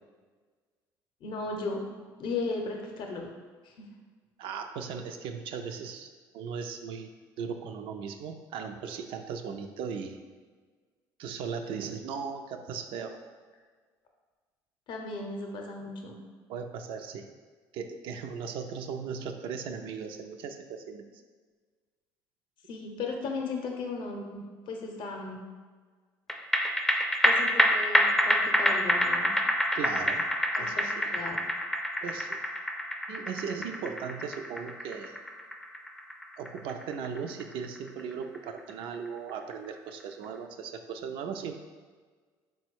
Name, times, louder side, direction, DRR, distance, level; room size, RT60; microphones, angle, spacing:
voice 1, 1.2-1.9 2.2-3.3 3.6-3.9 14.9-16.2 22.7-25.4 27.2-29.3 30.6-30.8 31.1-31.4, left 3 dB, 60° left, 2 dB, 0.6 m, -36 dB
voice 2, 4.4-7.1 7.4-10.2 11.2-13.2 16.5-17.3 17.7-21.0 29.7-30.3 30.5-31.2 32.0-32.4 33.1-35.1 36.4-41.6, right 6 dB, 70° right, 6 dB, 0.4 m, -37 dB
sound 1, 26.3-39.0 39.3-39.4, equal, 5° left, 0.4 m, -27 dB
3.9 x 2.2 x 4.5 m, 1.5 s
hypercardioid pair, 70°, 9 cm